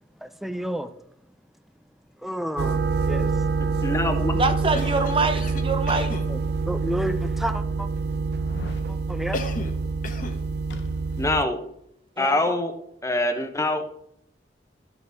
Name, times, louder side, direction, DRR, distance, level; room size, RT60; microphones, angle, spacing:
voice 1, 0.2-0.9 2.2-3.3 6.0-6.4 6.7-7.9 8.9-9.4, equal, ahead, 11 dB, 0.5 m, -31 dB
sound 1, 2.6-11.4, right 4 dB, 65° right, 0.5 m, -26 dB
voice 2, 3.6-4.3 11.2-11.6 12.2-12.7 13.0-13.9, left 2 dB, 15° left, 7 dB, 0.9 m, -24 dB
voice 3, 4.3-6.1 12.2-12.4, right 3 dB, 30° right, 8 dB, 0.8 m, -24 dB
Cough, 4.7-6.3 9.3-9.8 10.0-10.4, left 2 dB, 50° left, 1.1 m, -34 dB
sound 2, 6.4-6.5 7.1-7.2 8.3-8.9 10.7-11.4 11.7-11.8, left 2 dB, 75° left, 0.9 m, -42 dB
12.5 x 6.6 x 3.5 m, 0.76 s
head